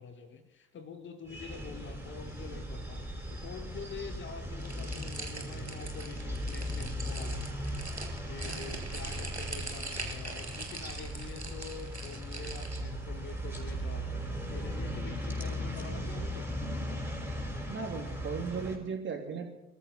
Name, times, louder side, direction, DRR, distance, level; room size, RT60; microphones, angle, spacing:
voice 1, 0.0-3.0 3.3-16.5, left 5 dB, 35° left, 8 dB, 1.8 m, -46 dB
sound 1, 1.3-18.8, equal, 5° right, 5.3 m, -38 dB
sound 2, 4.6-12.8, right 2 dB, 90° right, 1.6 m, -43 dB
voice 2, 17.7-19.5, right 5 dB, 35° right, 3 dB, 3.2 m, -36 dB
25.5 x 13.5 x 4.1 m, 0.94 s
figure-of-eight pair, 60°, 32 cm